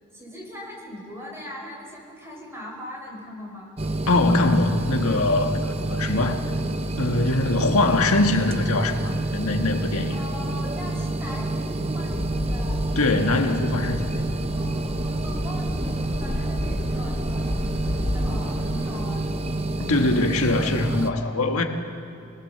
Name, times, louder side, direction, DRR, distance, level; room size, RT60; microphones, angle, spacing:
voice 1, 0.1-3.7 10.1-12.8 14.5-19.3, equal, 10° right, -1 dB, 4.4 m, -40 dB
sound 1, 3.8-21.1, right 2 dB, 30° right, 0.7 m, -28 dB
voice 2, 4.1-6.4 7.0-10.2 12.9-14.2 19.8-21.6, left 2 dB, 80° left, 4 dB, 1.5 m, -22 dB
sound 2, 12.1-19.0, left 1 dB, 65° left, 1.2 m, -32 dB
24.5 x 19.5 x 6.8 m, 2.5 s
head